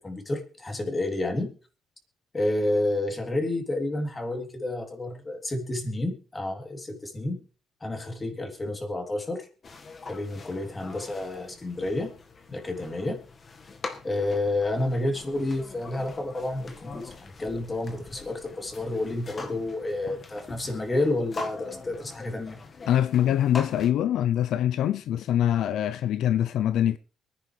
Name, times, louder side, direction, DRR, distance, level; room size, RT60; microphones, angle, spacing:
voice 1, 0.0-1.5 2.3-7.4 7.8-9.5 10.1-12.1 12.5-13.2 14.0-22.6, left 2 dB, 25° left, 3.4 m, -30 dB
sound 1, 9.6-23.9, left 4 dB, 40° left, 1.7 m, -43 dB
voice 2, 22.9-27.0, left 11 dB, 80° left, 0.6 m, -24 dB
23.5 x 10.0 x 3.4 m
cardioid pair, 90°, 0 cm